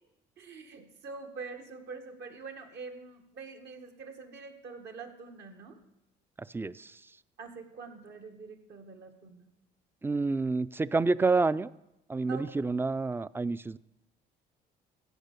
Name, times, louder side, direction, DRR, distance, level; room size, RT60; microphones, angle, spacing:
voice 1, 0.4-5.8 7.4-9.5 12.3-12.6, right 4 dB, 65° right, 5 dB, 1.7 m, -45 dB
voice 2, 6.4-7.0 10.0-11.7 12.1-13.8, right 3 dB, 10° right, 18 dB, 0.3 m, -28 dB
15.5 x 5.6 x 6.8 m, 0.88 s
supercardioid pair, 80°, 19 cm